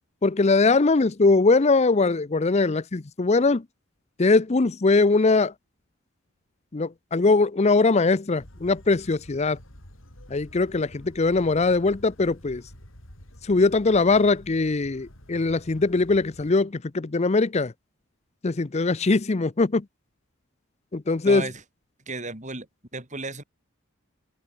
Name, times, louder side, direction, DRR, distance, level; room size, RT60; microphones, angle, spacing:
voice 1, 0.2-3.6 4.2-5.5 6.7-9.6 10.3-12.6 13.4-17.7 18.4-19.8 20.9-21.5, left 3 dB, 30° left, 0.6 m, -21 dB
sound 1, 8.4-16.5, equal, 65° left, 6.5 m, -48 dB
voice 2, 21.2-21.6 22.1-22.7 22.9-23.4, right 3 dB, 35° right, 7.6 m, -33 dB
open air
head